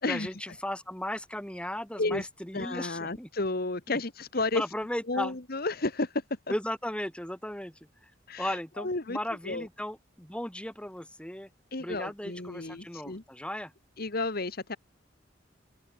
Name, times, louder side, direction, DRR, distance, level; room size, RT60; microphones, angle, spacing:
voice 1, 0.1-3.3 3.9-4.0 4.5-5.3 6.5-7.7 8.0-8.1 8.4-11.5 11.8-13.7, left 1 dB, 5° left, 3.6 m, -36 dB
voice 2, 2.5-4.6 5.1-6.2 8.3-9.2 9.4-9.7 11.7-13.2 14.0-14.8, left 2 dB, 55° left, 1.7 m, -32 dB
open air
head